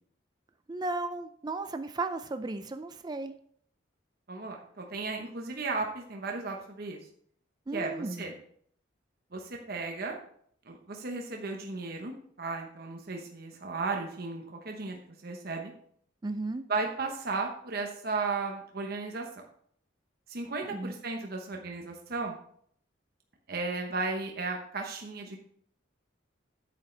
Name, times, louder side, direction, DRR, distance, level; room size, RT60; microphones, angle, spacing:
voice 1, 0.7-3.3 7.7-8.3 16.2-16.6 20.7-21.0, right 2 dB, 20° right, 9 dB, 0.4 m, -35 dB
voice 2, 4.3-7.0 7.7-8.3 9.3-10.2 10.6-15.7 16.7-19.4 20.3-22.4 23.5-25.4, right 3 dB, 50° right, 2 dB, 1.0 m, -35 dB
8.9 x 8.3 x 3.3 m, 0.63 s
head